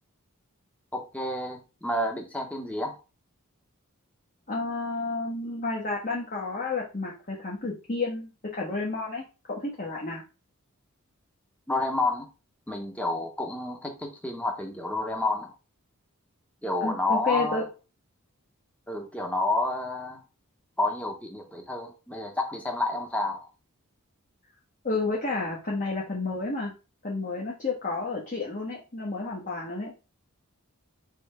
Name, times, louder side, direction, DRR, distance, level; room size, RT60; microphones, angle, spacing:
voice 1, 0.9-3.0 11.7-12.3 12.7-15.5 16.6-17.6 18.9-20.2 20.8-23.5, left 2 dB, 5° left, 2 dB, 0.9 m, -29 dB
voice 2, 4.5-10.2 16.8-17.7 24.8-26.7 27.0-30.0, left 3 dB, 40° left, -3 dB, 1.1 m, -31 dB
4.5 x 3.5 x 3.3 m, 0.31 s
head